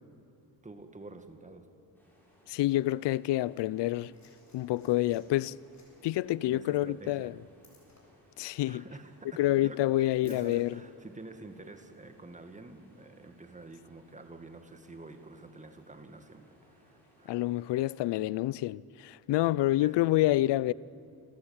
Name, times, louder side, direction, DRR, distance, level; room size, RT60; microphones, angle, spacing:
voice 1, 0.6-1.7 6.5-7.4 8.7-17.4 19.8-20.3, right 2 dB, 15° right, 2.1 m, -48 dB
sound 1, 1.9-18.3, equal, 5° left, 7.3 m, -64 dB
voice 2, 2.5-4.1 4.5-5.6 6.0-7.3 8.4-8.8 9.4-10.7 17.3-20.7, left 16 dB, 70° left, 0.6 m, -28 dB
Liquid, 4.1-10.6 11.7-11.8, left 3 dB, 40° left, 7.5 m, -65 dB
27.0 x 14.5 x 8.9 m
cardioid pair, 95°, 43 cm